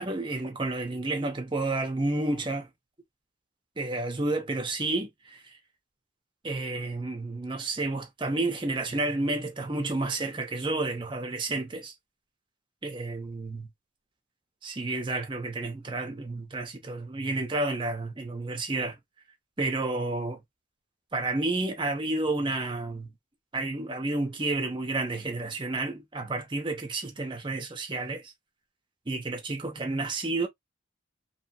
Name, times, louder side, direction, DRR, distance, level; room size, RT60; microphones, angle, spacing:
voice 1, 0.0-2.7 3.8-5.6 6.4-11.9 12.8-13.7 14.6-19.0 19.6-20.4 21.1-23.1 23.5-28.3 29.1-30.5, right 2 dB, 25° right, 0.7 m, -30 dB
3.0 x 2.0 x 2.8 m
head